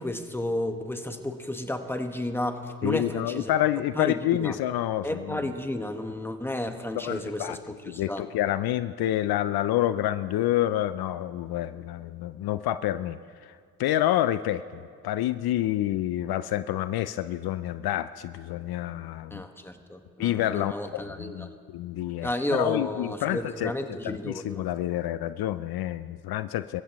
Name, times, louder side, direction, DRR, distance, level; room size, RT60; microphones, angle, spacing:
voice 1, 0.0-3.5 3.9-4.6 5.0-8.3 19.3-21.5 22.2-24.6, left 1 dB, 5° left, 6 dB, 1.4 m, -32 dB
voice 2, 2.8-5.5 7.0-7.6 7.9-19.4 20.2-26.8, left 13 dB, 70° left, 13 dB, 0.5 m, -28 dB
25.0 x 15.0 x 3.1 m, 2.1 s
supercardioid pair, 50°, 38 cm